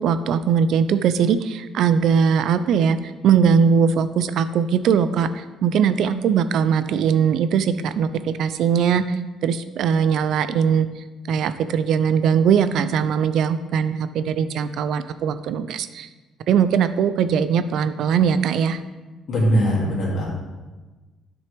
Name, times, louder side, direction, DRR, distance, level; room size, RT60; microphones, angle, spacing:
voice 1, 0.0-3.0 3.2-10.9 11.3-16.1 16.5-18.8, right 7 dB, 55° right, 12 dB, 0.4 m, -20 dB
voice 2, 19.3-20.3, equal, 40° left, -4 dB, 2.3 m, -20 dB
10.5 x 6.1 x 3.3 m, 1.2 s
cardioid pair, 175°, 0 cm